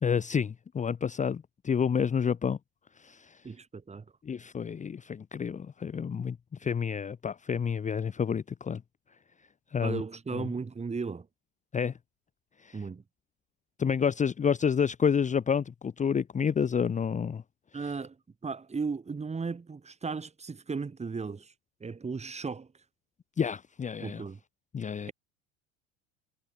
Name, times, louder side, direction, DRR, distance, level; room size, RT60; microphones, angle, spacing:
voice 1, 0.0-2.6 3.0-3.4 4.2-8.8 9.7-10.0 10.3-10.4 11.7-11.9 12.6-12.8 13.8-17.4 23.4-24.2 24.7-25.1, left 7 dB, 20° left, 1.1 m, -29 dB
voice 2, 3.4-4.0 9.8-11.3 12.7-13.0 17.7-18.2 18.4-21.5 21.8-22.7 24.0-24.4, right 4 dB, 20° right, 4.6 m, -35 dB
supercardioid pair, 105°, 34 cm